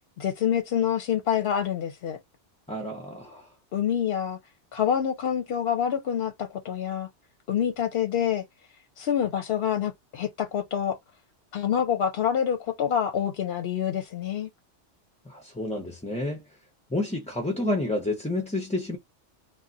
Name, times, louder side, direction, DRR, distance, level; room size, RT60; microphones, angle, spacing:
voice 1, 0.2-2.2 3.7-4.4 4.7-7.1 7.5-8.4 9.0-11.0 11.5-14.5, left 9 dB, 65° left, 0.8 m, -26 dB
voice 2, 2.7-3.5 15.3-16.4 16.9-19.0, left 1 dB, 10° left, 0.4 m, -29 dB
2.4 x 2.2 x 3.8 m
omnidirectional pair, 1.2 m